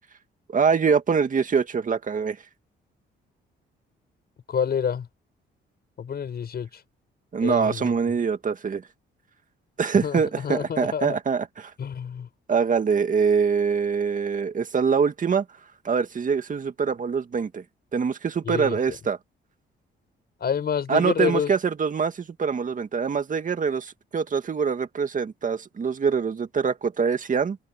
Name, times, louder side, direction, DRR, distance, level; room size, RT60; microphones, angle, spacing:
voice 1, 0.5-2.4 7.3-8.8 9.8-11.7 12.5-15.5 15.8-17.6 17.9-19.2 20.9-27.6, right 6 dB, 40° right, 2.1 m, -24 dB
voice 2, 4.5-5.1 6.0-6.8 7.4-7.9 10.0-11.2 11.8-12.3 18.4-18.8 20.4-21.5, left 7 dB, 55° left, 6.2 m, -28 dB
cardioid pair, 90°, 20 cm